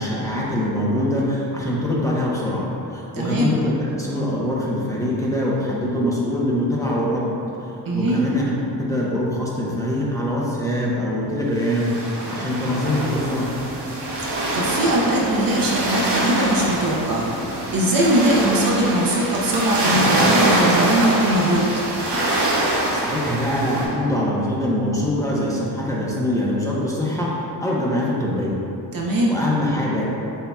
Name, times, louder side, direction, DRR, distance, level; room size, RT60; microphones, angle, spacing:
voice 1, 0.0-7.3 7.6-13.6 22.9-28.5 29.3-30.1, left 1 dB, 5° left, -6 dB, 0.9 m, -23 dB
voice 2, 3.1-3.5 7.8-8.3 14.2-17.3 17.7-21.8 28.9-29.3, right 1 dB, 50° right, -3 dB, 0.9 m, -21 dB
sound 1, 11.6-23.8, right 1 dB, 70° right, 1.2 m, -24 dB
7.9 x 2.9 x 2.3 m, 2.8 s
cardioid pair, 75°, 43 cm